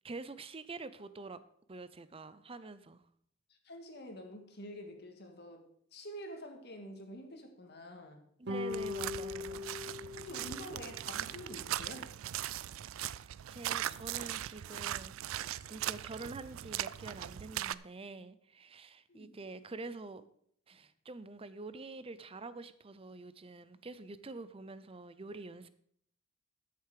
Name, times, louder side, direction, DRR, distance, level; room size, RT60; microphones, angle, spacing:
voice 1, 0.0-1.4 1.7-3.0 8.4-9.7 13.0-15.1 15.7-20.3 20.7-25.7, right 3 dB, 30° right, 14 dB, 0.6 m, -46 dB
voice 2, 3.5-8.2 10.2-12.1 19.1-19.4, equal, 55° left, 4 dB, 1.8 m, -48 dB
sound 1, 8.5-11.0, left 4 dB, 55° right, 1.0 m, -40 dB
sound 2, 8.7-17.7, right 12 dB, 80° right, 0.4 m, -40 dB
13.0 x 6.9 x 4.9 m, 0.65 s
head